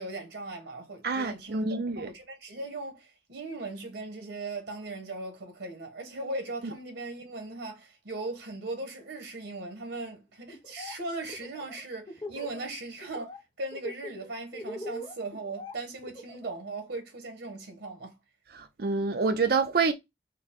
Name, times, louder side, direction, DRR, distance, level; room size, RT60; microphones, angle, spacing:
voice 1, 0.0-18.2, right 2 dB, 85° right, 1.0 m, -38 dB
voice 2, 1.0-2.1 18.5-19.9, right 4 dB, 60° right, 0.5 m, -27 dB
Laughter, 10.5-10.9 11.2-12.7 13.0-13.4 13.7-16.6, left 1 dB, 25° left, 0.5 m, -41 dB
4.5 x 2.0 x 3.6 m
head